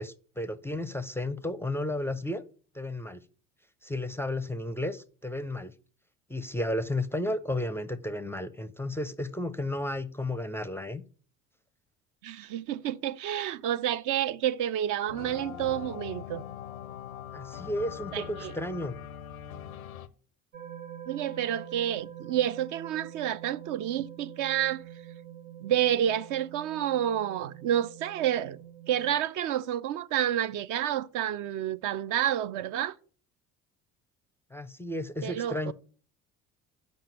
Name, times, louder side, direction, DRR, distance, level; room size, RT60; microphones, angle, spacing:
voice 1, 0.0-2.4 2.7-3.2 3.8-5.7 6.3-11.0 17.3-19.0 34.5-35.7, left 1 dB, 5° left, 0.4 m, -33 dB
voice 2, 12.2-16.4 18.1-18.5 21.1-24.8 25.6-28.6 28.9-32.9 35.2-35.7, right 11 dB, 50° right, 0.5 m, -29 dB
sound 1, 15.1-20.1, left 9 dB, 90° left, 0.6 m, -42 dB
sound 2, 20.5-29.1, right 10 dB, 75° right, 1.5 m, -45 dB
7.3 x 5.3 x 5.6 m
figure-of-eight pair, 55°, 41 cm